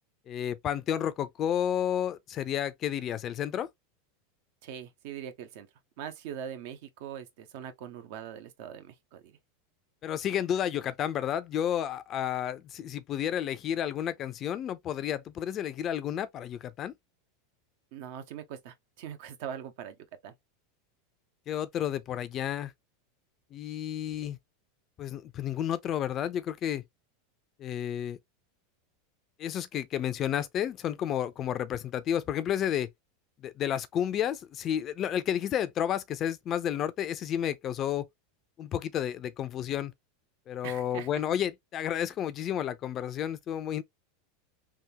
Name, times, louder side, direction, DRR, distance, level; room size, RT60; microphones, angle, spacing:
voice 1, 0.3-3.7 10.0-16.9 21.5-22.7 23.5-24.4 25.0-26.8 27.6-28.2 29.4-32.9 33.4-38.1 38.6-39.9 40.5-43.8, left 10 dB, 35° left, 0.4 m, -31 dB
voice 2, 4.6-5.7 6.0-9.4 17.9-20.3 40.6-41.2, right 9 dB, 65° right, 0.8 m, -42 dB
3.5 x 2.3 x 2.8 m
supercardioid pair, 120°, 0 cm